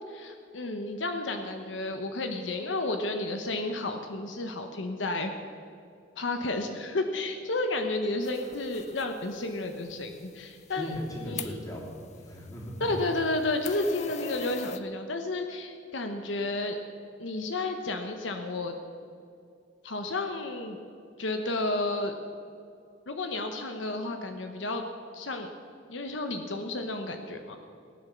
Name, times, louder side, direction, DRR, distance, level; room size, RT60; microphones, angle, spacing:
voice 1, 0.1-5.3 6.2-10.9 11.3-11.5 12.8-16.8 17.2-18.7 19.8-20.8 21.2-22.1 23.1-24.9 25.1-25.5 25.9-27.6, left 2 dB, 75° left, 5 dB, 1.0 m, -32 dB
sound 1, 8.2-14.8, left 6 dB, 35° left, 0.6 m, -44 dB
voice 2, 10.7-12.9, equal, 20° left, -2 dB, 3.1 m, -38 dB
17.5 x 9.2 x 6.8 m, 2.4 s
head